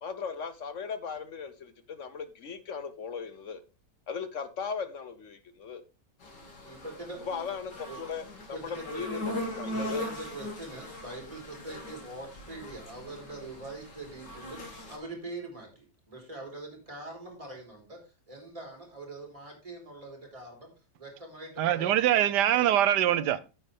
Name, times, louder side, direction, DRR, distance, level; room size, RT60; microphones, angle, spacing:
voice 1, 0.0-3.6 4.1-5.8 7.2-8.6 8.9-10.1, left 6 dB, 55° left, 1.1 m, -37 dB
sound 1, 6.2-15.0, left 1 dB, 80° left, 3.1 m, -40 dB
voice 2, 6.6-7.2 7.9-8.2 8.5-9.3 9.7-18.0 18.3-20.7 21.0-22.3, right 2 dB, 20° right, 3.6 m, -43 dB
voice 3, 21.6-23.4, right 11 dB, 75° right, 1.3 m, -23 dB
9.6 x 7.7 x 3.5 m
omnidirectional pair, 1.8 m